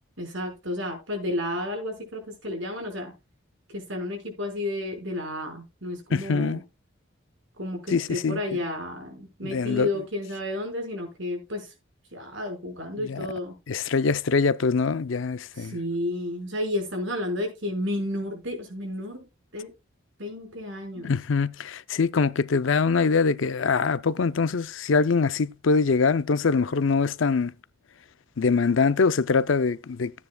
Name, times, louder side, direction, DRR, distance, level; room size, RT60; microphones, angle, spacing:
voice 1, 0.2-3.1 3.7-6.6 7.6-11.7 12.1-13.5 15.6-19.2 19.5-19.7 20.2-21.1, left 1 dB, 70° right, 5.2 m, -31 dB
voice 2, 6.1-6.6 7.9-8.6 9.4-10.0 12.9-13.3 13.7-15.8 21.0-27.5 28.4-30.1, left 4 dB, 70° left, 0.5 m, -23 dB
15.0 x 9.5 x 2.3 m
head